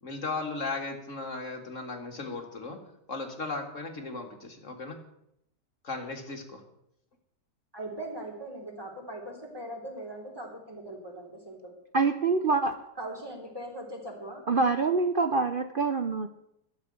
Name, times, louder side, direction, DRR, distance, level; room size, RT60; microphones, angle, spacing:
voice 1, 0.0-2.8 3.1-5.0 5.8-6.6, left 3 dB, 45° left, 4 dB, 2.0 m, -36 dB
voice 2, 7.7-11.7 13.0-14.4, right 1 dB, 15° right, 0 dB, 3.6 m, -40 dB
voice 3, 11.9-12.7 14.5-16.3, right 4 dB, 65° right, 9 dB, 0.5 m, -25 dB
13.0 x 7.5 x 10.0 m, 0.79 s
omnidirectional pair, 1.9 m